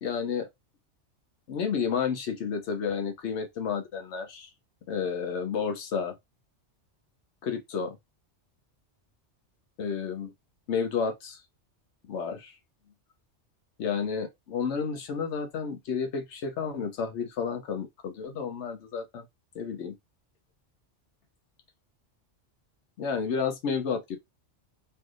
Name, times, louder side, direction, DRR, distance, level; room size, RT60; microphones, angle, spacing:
voice 1, 0.0-0.5 1.5-4.5 4.9-6.2 7.4-8.0 9.8-10.3 10.7-11.4 12.1-12.5 13.8-19.3 19.5-20.0 23.0-24.2, left 6 dB, 70° left, 1.0 m, -31 dB
3.3 x 2.7 x 2.4 m
omnidirectional pair, 1.2 m